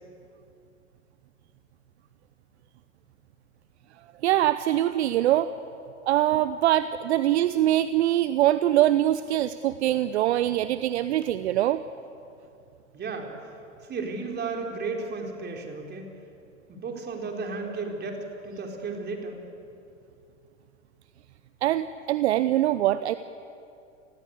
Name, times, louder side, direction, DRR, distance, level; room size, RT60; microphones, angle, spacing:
voice 1, 4.2-5.5 6.1-11.8 21.6-23.1, right 13 dB, 60° right, 14 dB, 0.9 m, -23 dB
voice 2, 12.9-13.3 13.9-16.1 16.7-19.4, right 4 dB, 25° right, 2 dB, 4.7 m, -34 dB
29.0 x 21.0 x 8.4 m, 2.6 s
figure-of-eight pair, 90°, 38 cm